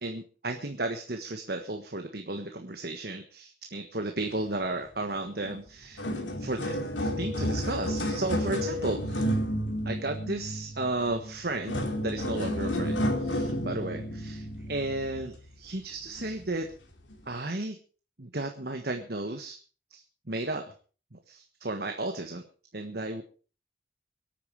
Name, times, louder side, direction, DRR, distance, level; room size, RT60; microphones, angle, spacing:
voice 1, 0.0-6.0 6.4-9.2 9.8-16.7 17.3-17.8 18.2-19.6 19.9-20.7 21.1-22.4 22.7-23.2, right 2 dB, 55° right, 5 dB, 1.5 m, -34 dB
sound 1, 5.4-5.6 5.8-15.5 16.2-16.4 17.1-17.2, equal, 85° left, 2.9 m, -31 dB
23.5 x 9.0 x 4.8 m, 0.39 s
head